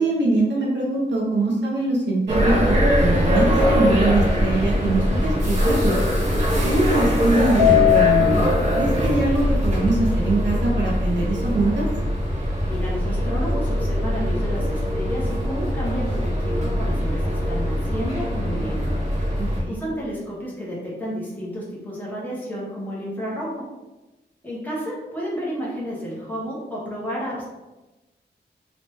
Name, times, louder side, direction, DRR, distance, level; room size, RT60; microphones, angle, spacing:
voice 1, 0.0-6.0 6.6-8.3 8.7-11.8 19.4-19.8, right 2 dB, 80° right, -3 dB, 0.7 m, -23 dB
sound 1, 2.3-19.6, left 1 dB, 40° right, 0.8 m, -21 dB
voice 2, 12.7-18.9 19.7-23.6 24.4-27.5, equal, 10° left, -6 dB, 0.9 m, -31 dB
3.1 x 3.0 x 3.1 m, 1.1 s
wide cardioid pair, 165°, 18 cm